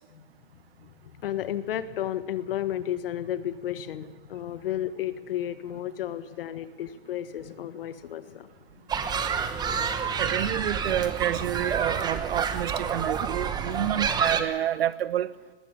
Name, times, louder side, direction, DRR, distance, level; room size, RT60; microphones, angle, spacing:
voice 1, 1.2-8.5 9.9-10.1, left 11 dB, 60° left, 1.5 m, -32 dB
sound 1, 8.9-14.4, right 6 dB, 10° right, 1.0 m, -28 dB
voice 2, 10.2-15.3, right 11 dB, 65° right, 1.0 m, -28 dB
20.0 x 15.5 x 8.3 m
hypercardioid pair, 140°, 32 cm